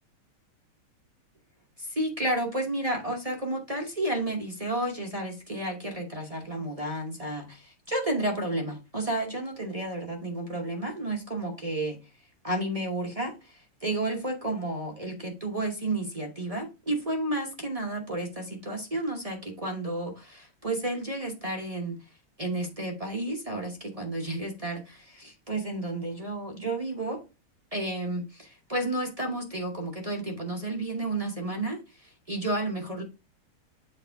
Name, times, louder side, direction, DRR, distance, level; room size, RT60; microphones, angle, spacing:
voice 1, 1.8-7.6 7.9-12.0 12.4-13.3 13.8-22.0 22.4-27.2 27.7-31.8 32.3-33.0, right 1 dB, 35° right, 0 dB, 0.5 m, -31 dB
7.7 x 4.1 x 3.4 m, 0.28 s
omnidirectional pair, 2.4 m